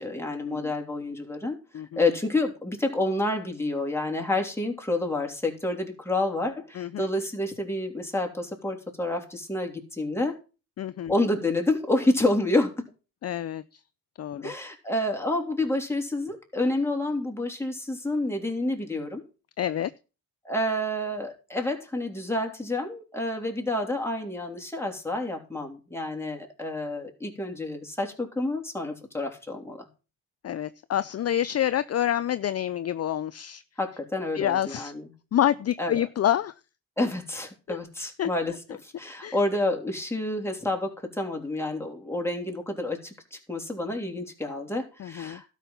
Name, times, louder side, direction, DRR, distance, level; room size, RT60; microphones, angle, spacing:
voice 1, 0.0-1.6 2.0-10.4 11.1-12.9 14.4-19.2 20.4-29.9 33.8-35.0 35.8-35.9 37.0-38.5 38.8-45.4, left 2 dB, 5° left, 1 dB, 3.3 m, -29 dB
voice 2, 10.8-11.1 13.2-13.8 14.2-14.5 19.6-19.9 30.4-33.6 34.3-34.9 35.3-36.5 37.7-37.8 38.2-38.3 39.2-39.4 45.0-45.4, left 11 dB, 45° left, 15 dB, 0.5 m, -27 dB
12.0 x 5.8 x 6.9 m, 0.34 s
cardioid pair, 70°, 36 cm